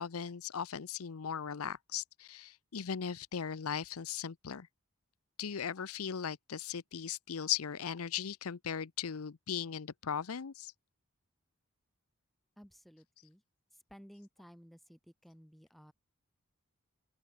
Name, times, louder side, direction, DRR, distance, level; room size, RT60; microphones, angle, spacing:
voice 1, 0.0-4.7 5.4-10.7, left 8 dB, 90° left, 0.7 m, -38 dB
voice 2, 12.6-13.4 13.9-15.9, equal, ahead, 2.4 m, -56 dB
open air
head